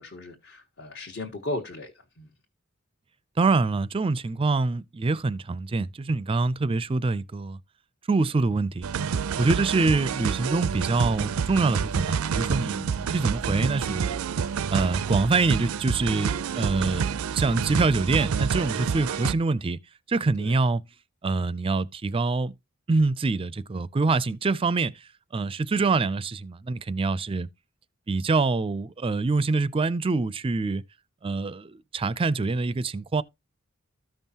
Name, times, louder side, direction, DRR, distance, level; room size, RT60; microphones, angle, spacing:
voice 1, 0.0-2.3 12.8-12.9 20.4-20.5, left 2 dB, 60° left, 1.4 m, -36 dB
voice 2, 3.4-7.6 8.1-8.9 9.4-14.2 14.7-19.8 20.1-20.8 21.2-22.5 22.9-27.5 28.1-30.8 31.2-33.2, right 3 dB, 25° right, 0.4 m, -25 dB
sound 1, 8.8-19.3, right 6 dB, 85° right, 0.4 m, -28 dB
14.0 x 5.4 x 2.8 m
head